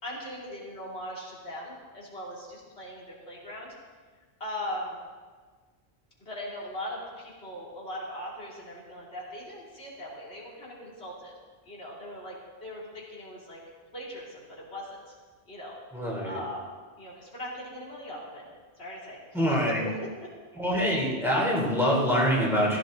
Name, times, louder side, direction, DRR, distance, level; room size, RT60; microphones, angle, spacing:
voice 1, 0.0-3.7 4.4-5.0 6.2-11.3 11.6-13.6 13.9-15.1 15.5-15.8 16.2-16.7 17.0-18.4 18.8-19.2 19.5-20.3, left 1 dB, 70° left, -5 dB, 3.5 m, -39 dB
voice 2, 15.9-16.4 19.3-19.8 20.6-22.8, equal, ahead, -5 dB, 3.7 m, -25 dB
16.5 x 14.5 x 4.0 m, 1.5 s
omnidirectional pair, 1.1 m